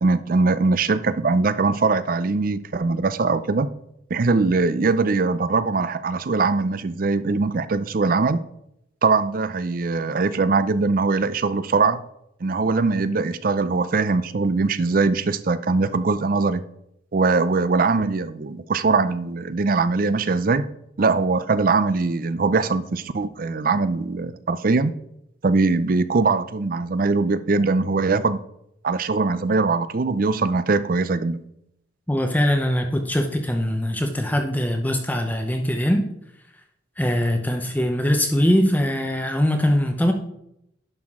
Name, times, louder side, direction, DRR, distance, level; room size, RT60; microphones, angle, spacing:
voice 1, 0.0-3.7 4.1-8.4 9.0-12.0 12.4-16.6 17.1-20.7 21.0-24.9 25.4-28.4 28.8-31.4, right 3 dB, 45° right, 14 dB, 0.5 m, -21 dB
voice 2, 32.1-36.1 37.0-40.1, equal, 10° left, 4 dB, 0.7 m, -22 dB
10.5 x 5.9 x 3.7 m, 0.77 s
head